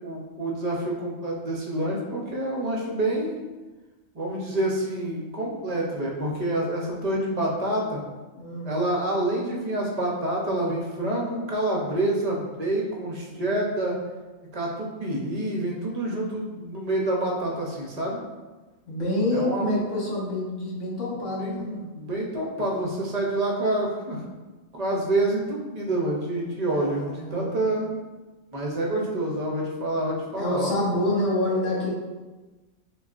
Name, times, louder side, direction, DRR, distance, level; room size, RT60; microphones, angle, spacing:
voice 1, 0.0-3.4 4.1-8.0 8.7-14.0 14.5-18.2 19.3-19.7 21.4-24.2 24.7-28.0 28.5-30.7, right 1 dB, 40° right, -2 dB, 0.7 m, -27 dB
voice 2, 8.4-8.7 18.9-21.8 26.7-27.6 30.3-31.9, left 1 dB, 65° left, -4 dB, 1.4 m, -27 dB
6.2 x 2.4 x 2.5 m, 1.2 s
omnidirectional pair, 1.4 m